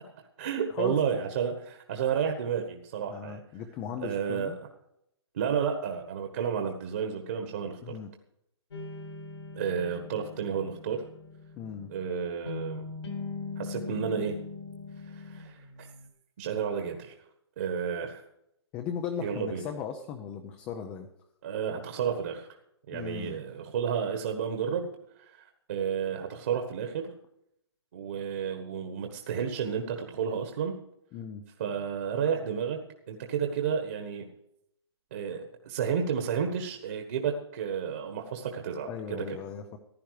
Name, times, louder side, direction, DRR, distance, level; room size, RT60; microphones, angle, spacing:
voice 1, 0.4-3.4 4.0-4.5 5.3-7.8 9.5-11.0 11.9-12.8 13.6-14.4 15.0-15.9 16.4-17.1 17.6-18.2 19.2-19.6 21.4-22.5 22.9-24.9 25.1-27.1 27.9-30.8 31.6-32.8 33.1-34.2 35.1-39.2, right 7 dB, 35° right, 4 dB, 1.5 m, -31 dB
voice 2, 3.1-4.6 7.8-8.1 11.6-11.9 18.7-21.1 22.9-23.4 31.1-31.4 38.9-39.8, left 7 dB, 10° left, 5 dB, 0.5 m, -37 dB
sound 1, 8.7-16.1, left 4 dB, 80° left, 4.0 m, -41 dB
15.0 x 12.0 x 4.9 m, 0.77 s
hypercardioid pair, 175°, 14 cm